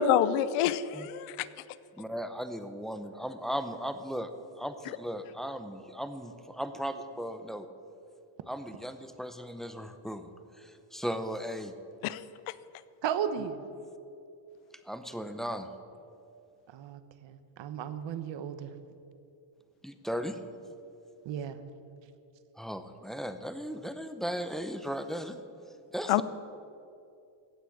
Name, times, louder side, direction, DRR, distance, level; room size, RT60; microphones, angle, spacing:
voice 1, 0.0-1.5 12.0-12.2 26.1-26.2, left 9 dB, 90° left, 16 dB, 0.7 m, -26 dB
voice 2, 2.0-4.3 4.6-7.7 8.5-10.3 10.6-11.7 13.4-13.5 14.8-15.7 19.8-20.4 22.6-25.4 25.9-26.2, equal, ahead, 9 dB, 0.6 m, -37 dB
voice 3, 13.0-13.6 16.7-18.7 21.2-21.6, right 8 dB, 65° right, 11 dB, 1.1 m, -35 dB
16.0 x 6.1 x 8.5 m, 2.6 s
cardioid pair, 125°, 49 cm